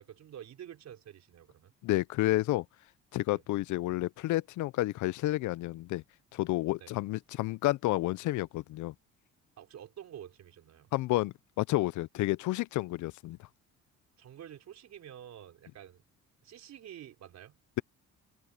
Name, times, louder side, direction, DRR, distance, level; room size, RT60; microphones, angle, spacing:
voice 1, 0.0-1.7 3.3-3.4 6.8-6.9 9.6-10.9 14.2-16.0 16.4-17.6, right 10 dB, 55° right, 4.7 m, -49 dB
voice 2, 1.8-2.6 3.1-6.0 6.3-8.9 10.9-13.4, left 17 dB, 65° left, 0.5 m, -30 dB
open air
cardioid pair, 125°, 32 cm